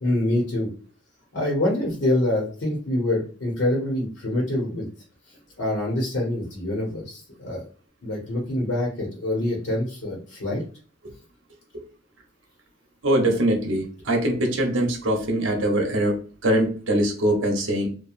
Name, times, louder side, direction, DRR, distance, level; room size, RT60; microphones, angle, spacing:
voice 1, 0.0-0.7 1.3-4.9 5.6-7.6 8.0-10.6, left 1 dB, 65° left, -2 dB, 1.0 m, -25 dB
voice 2, 13.0-17.9, right 1 dB, 75° right, 2 dB, 0.8 m, -22 dB
3.0 x 2.3 x 2.4 m, 0.39 s
head